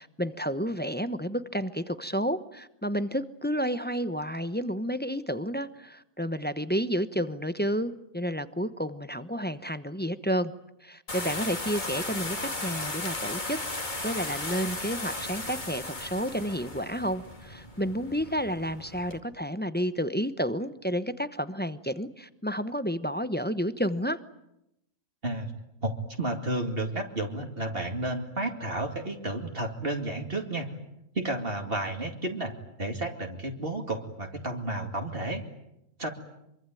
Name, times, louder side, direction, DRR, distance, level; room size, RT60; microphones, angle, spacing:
voice 1, 0.0-10.5 10.8-13.6 14.0-24.2, equal, 10° left, 11 dB, 0.8 m, -31 dB
sound 1, 11.1-19.2, left 2 dB, 35° left, 2.7 m, -36 dB
voice 2, 25.8-30.7 31.1-35.4 36.0-36.1, right 2 dB, 45° right, 3 dB, 2.7 m, -32 dB
25.5 x 24.0 x 9.2 m, 0.84 s
omnidirectional pair, 1.4 m